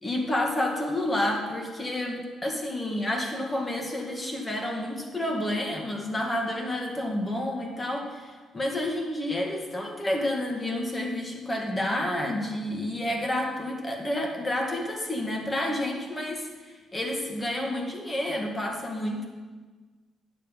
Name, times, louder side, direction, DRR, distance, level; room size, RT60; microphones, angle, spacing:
voice 1, 0.0-16.5 16.9-19.3, left 1 dB, 20° left, 1 dB, 1.8 m, -29 dB
9.8 x 6.9 x 5.3 m, 1.4 s
cardioid pair, 90°, 0 cm